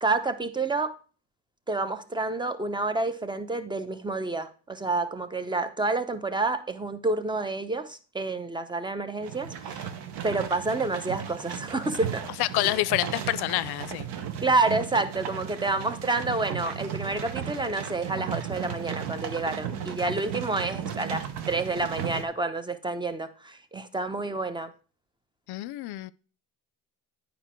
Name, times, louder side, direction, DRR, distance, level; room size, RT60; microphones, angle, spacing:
voice 1, 0.0-0.9 1.7-9.9 10.2-12.2 14.4-24.7, right 3 dB, 10° right, 0.8 m, -29 dB
sound 1, 9.2-22.2, right 8 dB, 80° right, 1.0 m, -35 dB
voice 2, 12.4-14.1 25.5-26.1, left 17 dB, 75° left, 0.5 m, -27 dB
9.0 x 5.2 x 4.4 m
cardioid pair, 85°, 40 cm